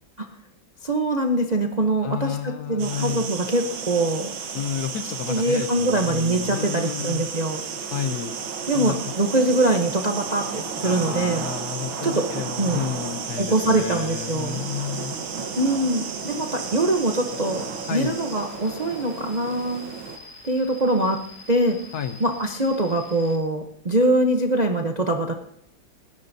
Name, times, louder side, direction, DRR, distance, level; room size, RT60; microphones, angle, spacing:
voice 1, 0.8-4.3 5.3-7.6 8.7-11.4 12.0-12.3 12.6-12.8 13.4-14.6 15.6-17.6 17.9-19.8 20.4-21.2 21.5-21.8 22.2-25.3, right 2 dB, 40° right, 3 dB, 0.5 m, -23 dB
voice 2, 2.0-3.3 4.5-7.3 7.9-8.3 8.7-9.1 10.8-15.2 17.9-18.2 21.9-22.2, left 9 dB, 65° left, 10 dB, 1.0 m, -31 dB
sound 1, 2.8-20.2, right 6 dB, 85° right, 2.1 m, -33 dB
sound 2, 13.3-23.4, left 2 dB, 25° left, 2.5 m, -45 dB
30.0 x 10.5 x 2.7 m, 0.74 s
omnidirectional pair, 2.1 m